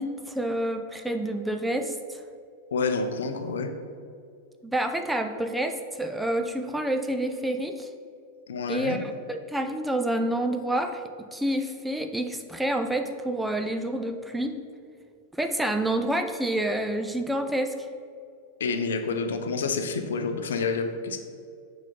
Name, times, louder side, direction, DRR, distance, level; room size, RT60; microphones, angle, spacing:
voice 1, 0.0-2.2 4.6-7.9 8.7-11.0 11.3-14.5 15.4-17.7, right 1 dB, 5° right, 6 dB, 0.4 m, -28 dB
voice 2, 2.7-3.7 8.5-9.0 18.6-21.2, left 4 dB, 65° left, 7 dB, 0.5 m, -28 dB
6.3 x 3.9 x 5.1 m, 2.3 s
figure-of-eight pair, 90°, 0 cm